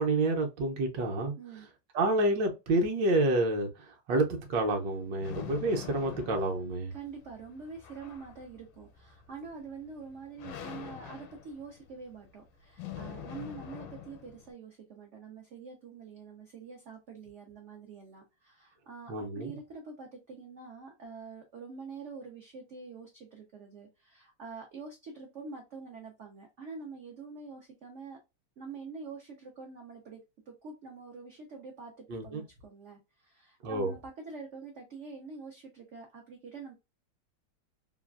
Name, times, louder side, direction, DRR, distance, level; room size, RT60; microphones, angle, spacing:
voice 1, 0.0-1.3 1.9-6.9 19.1-19.6 32.1-32.4 33.6-33.9, right 2 dB, 70° right, 1.3 m, -29 dB
voice 2, 1.4-1.7 6.9-28.2 28.6-36.7, right 4 dB, 85° right, 0.6 m, -46 dB
sound 1, 4.1-14.5, left 9 dB, 80° left, 1.3 m, -46 dB
3.3 x 2.3 x 2.3 m
omnidirectional pair, 2.1 m